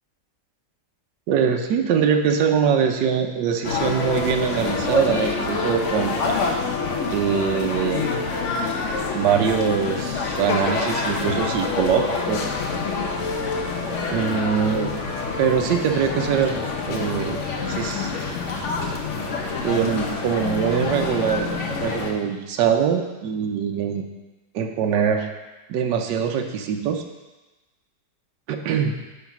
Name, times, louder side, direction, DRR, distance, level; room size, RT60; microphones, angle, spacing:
voice 1, 1.3-6.1 7.1-8.0 9.1-12.4 14.1-14.9 15.4-16.6 16.9-17.4 17.7-18.1 19.6-21.5 21.8-24.0 24.5-25.3 25.7-27.0 28.5-28.9, right 7 dB, 75° right, 4 dB, 1.4 m, -23 dB
sound 1, 3.6-22.1, left 4 dB, 50° left, 1.0 m, -26 dB
9.7 x 4.0 x 5.9 m, 1.1 s
omnidirectional pair, 1.9 m